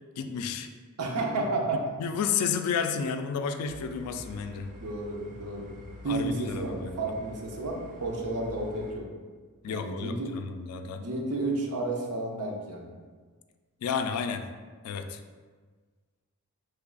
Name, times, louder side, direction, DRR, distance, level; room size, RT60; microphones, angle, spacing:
voice 1, 0.2-0.7 2.0-4.7 6.1-7.1 9.6-11.0 13.8-14.4 14.8-15.2, left 6 dB, 75° left, 12 dB, 0.3 m, -31 dB
voice 2, 1.0-1.9 4.8-5.7 6.0-9.1 9.7-10.3 11.0-12.9, right 2 dB, 85° right, 1 dB, 0.6 m, -31 dB
sound 1, 3.7-8.9, left 2 dB, 35° right, 0.4 m, -47 dB
3.2 x 2.3 x 3.7 m, 1.5 s
head